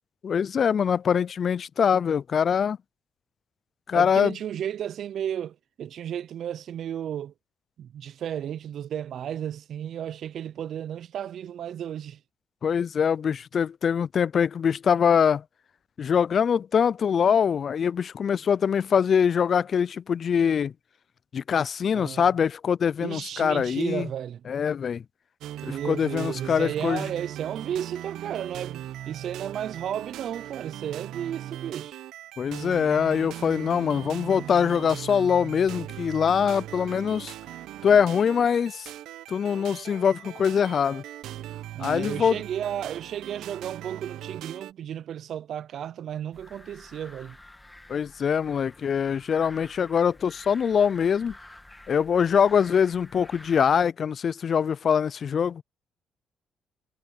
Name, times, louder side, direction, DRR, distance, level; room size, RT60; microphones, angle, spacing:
voice 1, 0.2-2.8 3.9-4.4 12.6-15.4 16.0-20.7 21.3-24.1 24.5-25.0 25.6-27.0 32.4-37.3 37.8-38.9 39.3-41.0 41.8-42.4 47.9-51.3 51.9-55.6, left 7 dB, 50° left, 0.3 m, -23 dB
voice 2, 3.9-7.3 7.8-12.2 21.9-22.3 23.0-24.4 25.7-32.0 41.7-47.4, right 10 dB, 65° right, 0.4 m, -33 dB
sound 1, 25.4-44.7, right 12 dB, 85° right, 1.0 m, -39 dB
sound 2, 46.3-53.9, left 1 dB, 10° left, 2.1 m, -49 dB
cardioid pair, 90°, 0 cm